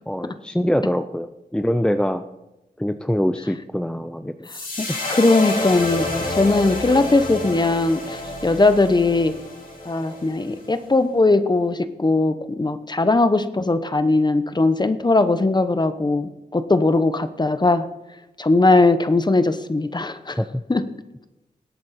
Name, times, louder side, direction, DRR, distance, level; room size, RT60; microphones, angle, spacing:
voice 1, 0.1-2.2 2.8-4.5 20.4-20.5, equal, 5° left, 9 dB, 0.5 m, -24 dB
sound 1, 4.4-10.8, left 2 dB, 60° left, 6.1 m, -29 dB
voice 2, 4.8-9.3 9.9-17.9 18.4-20.4 20.7-20.8, left 2 dB, 25° left, 11 dB, 1.0 m, -19 dB
19.5 x 8.7 x 4.3 m, 0.96 s
cardioid pair, 70°, 16 cm